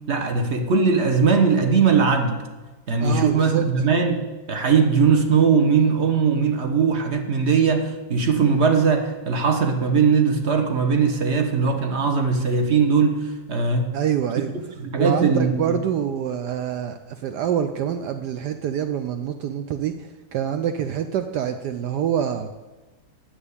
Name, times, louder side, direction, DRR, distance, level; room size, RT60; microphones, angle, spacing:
voice 1, 0.1-2.4 2.9-13.9 14.8-15.7, right 5 dB, 40° right, 5 dB, 1.1 m, -20 dB
voice 2, 3.0-3.9 13.9-14.5 15.0-22.5, right 9 dB, 75° right, 8 dB, 1.0 m, -26 dB
7.9 x 7.3 x 8.3 m, 1.2 s
omnidirectional pair, 2.2 m